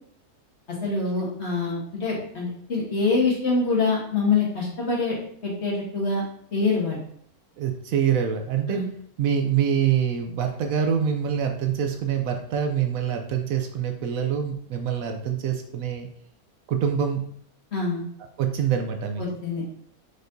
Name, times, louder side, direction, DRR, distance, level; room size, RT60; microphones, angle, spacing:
voice 1, 0.8-5.2 5.4-6.2 6.5-7.0 8.7-8.8 17.7-18.1 19.2-19.6, left 3 dB, 50° left, -4 dB, 1.6 m, -25 dB
voice 2, 7.6-8.8 9.2-16.1 16.7-17.2 18.4-19.2, right 8 dB, 75° right, 5 dB, 0.9 m, -25 dB
4.9 x 4.1 x 2.6 m, 0.64 s
omnidirectional pair, 1.6 m